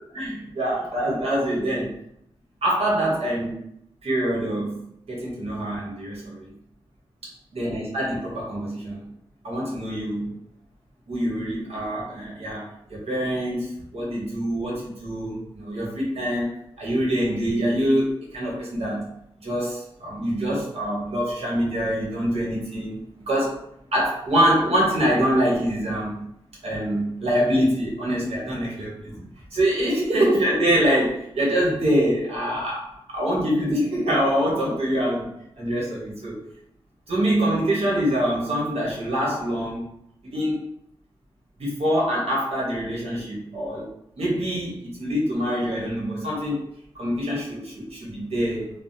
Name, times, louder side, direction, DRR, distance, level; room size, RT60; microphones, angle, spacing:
voice 1, 0.1-1.9 2.6-3.7 4.0-6.6 7.5-9.1 9.4-10.3 11.1-19.1 19.4-23.6 23.9-26.2 26.6-29.2 29.5-35.3 35.6-36.4 37.1-39.8 40.3-40.6 41.6-43.9 44.2-46.6 46.9-48.8, equal, 80° right, -4 dB, 1.2 m, -25 dB
3.4 x 2.0 x 2.7 m, 0.74 s
cardioid pair, 55°, 10 cm